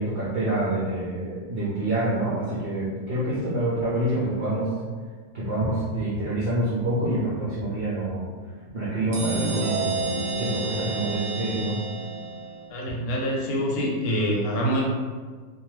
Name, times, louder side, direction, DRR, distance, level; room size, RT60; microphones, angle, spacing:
voice 1, 0.0-4.7 5.3-8.3 8.7-11.8, right 1 dB, 65° right, -8 dB, 0.6 m, -27 dB
sound 1, 9.1-12.7, right 3 dB, 85° right, 1.1 m, -30 dB
voice 2, 12.7-14.8, equal, 75° left, -2 dB, 1.1 m, -25 dB
2.5 x 2.2 x 3.0 m, 1.5 s
omnidirectional pair, 1.6 m